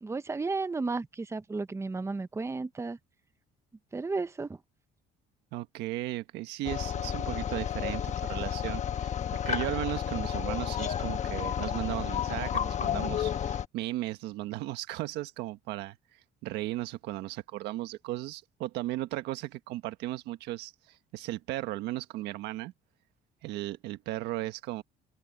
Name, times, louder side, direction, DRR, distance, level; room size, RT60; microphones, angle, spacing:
voice 1, 0.0-3.0 3.9-4.6, right 3 dB, 15° right, 0.9 m, -33 dB
voice 2, 5.5-9.1 9.4-16.0 16.4-22.7 23.4-24.8, right 16 dB, 90° right, 1.4 m, -36 dB
sound 1, 6.6-13.7, left 9 dB, 45° left, 1.1 m, -31 dB
cardioid pair, 110°, 17 cm